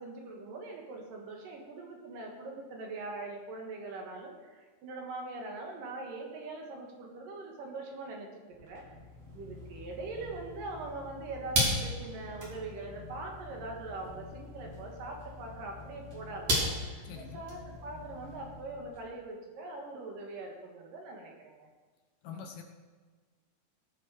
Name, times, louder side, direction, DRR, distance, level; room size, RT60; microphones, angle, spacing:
voice 1, 0.0-8.3 8.6-8.8 9.3-21.7, right 2 dB, 65° right, 0 dB, 3.3 m, -42 dB
sound 1, 8.5-19.0, equal, 45° right, 3.9 m, -37 dB
voice 2, 17.1-17.4 22.2-22.6, left 6 dB, 70° left, 4 dB, 2.5 m, -44 dB
18.0 x 7.2 x 5.0 m, 1.4 s
omnidirectional pair, 4.3 m